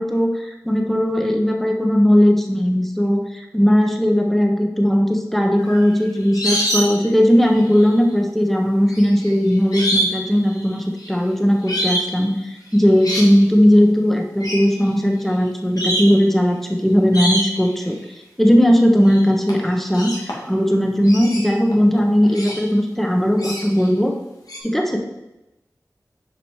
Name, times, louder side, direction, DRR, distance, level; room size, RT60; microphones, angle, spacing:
voice 1, 0.0-18.0 18.4-24.1 24.6-25.0, equal, 5° left, 2 dB, 1.2 m, -17 dB
sound 1, 5.6-7.1 7.4-7.9 8.9-10.2 10.5-11.1 11.7-12.1 12.7-13.3 14.4-14.7 15.3-15.4 15.8-16.2 17.1-17.7 19.1-19.2 19.5-20.6 21.0-22.7 23.4-23.9 24.5-24.6, equal, 75° left, 1.8 m, -25 dB
6.0 x 5.1 x 4.8 m, 0.95 s
cardioid pair, 45°, 6 cm